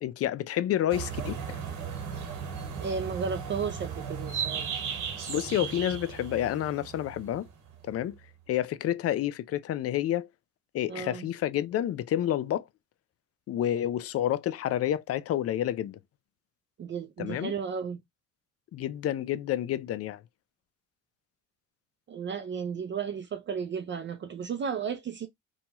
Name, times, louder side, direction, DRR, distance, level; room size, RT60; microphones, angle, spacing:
voice 1, 0.0-1.6 5.3-7.5 7.8-8.2 8.5-10.3 10.7-12.7 13.5-16.0 17.2-17.5 18.7-20.2, left 12 dB, 50° left, 0.4 m, -29 dB
sound 1, 0.9-8.0, right 7 dB, 85° right, 1.1 m, -36 dB
voice 2, 2.8-4.7 10.9-11.2 16.8-18.0 22.1-25.3, right 6 dB, 40° right, 0.4 m, -34 dB
2.8 x 2.3 x 2.9 m
cardioid pair, 90°, 30 cm